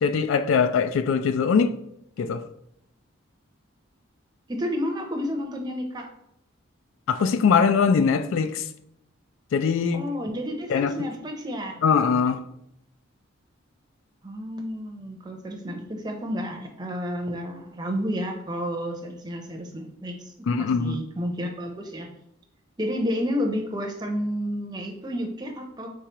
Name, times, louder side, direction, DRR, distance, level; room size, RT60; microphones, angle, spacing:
voice 1, 0.0-1.7 2.2-2.4 7.1-8.6 9.5-10.1 10.7-10.9 11.8-12.4 20.5-21.0, left 6 dB, 75° left, 0.3 m, -22 dB
voice 2, 4.5-6.1 9.9-11.8 14.2-20.3 20.6-22.1 22.8-25.9, equal, 20° right, 0.6 m, -31 dB
4.5 x 3.6 x 2.9 m
head